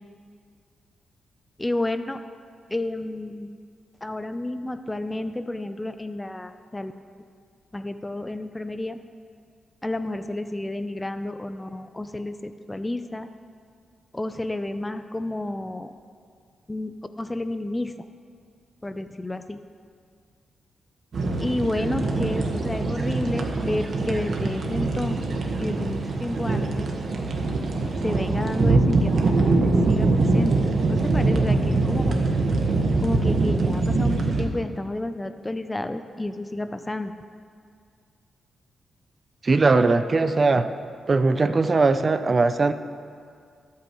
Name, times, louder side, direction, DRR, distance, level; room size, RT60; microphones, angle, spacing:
voice 1, 1.6-2.2 2.7-3.6 4.0-6.9 7.7-9.0 9.8-13.3 14.1-15.9 16.7-17.9 18.8-19.6 21.4-26.9 28.0-30.6 30.9-32.2 33.0-37.1, left 1 dB, 15° left, 9 dB, 0.5 m, -31 dB
sound 1, 21.1-34.5, right 3 dB, 60° right, 1.4 m, -23 dB
voice 2, 39.4-40.7 41.1-42.7, right 3 dB, 35° right, 10 dB, 0.5 m, -20 dB
22.0 x 8.5 x 3.1 m, 2.2 s
cardioid pair, 95°, 0 cm